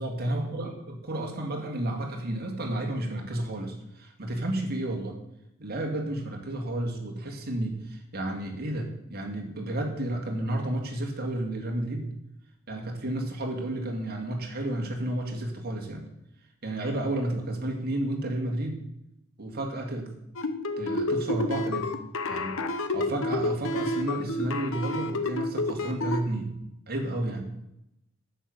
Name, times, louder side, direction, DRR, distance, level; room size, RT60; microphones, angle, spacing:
voice 1, 0.0-5.2 5.6-12.1 12.7-16.1 16.6-18.8 19.4-20.1 20.8-21.9 22.2-22.6 22.9-26.5 26.9-27.5, right 1 dB, 45° right, 1 dB, 2.3 m, -31 dB
sound 1, 20.4-26.2, left 2 dB, 65° left, 1.0 m, -29 dB
9.9 x 7.0 x 8.0 m, 0.84 s
head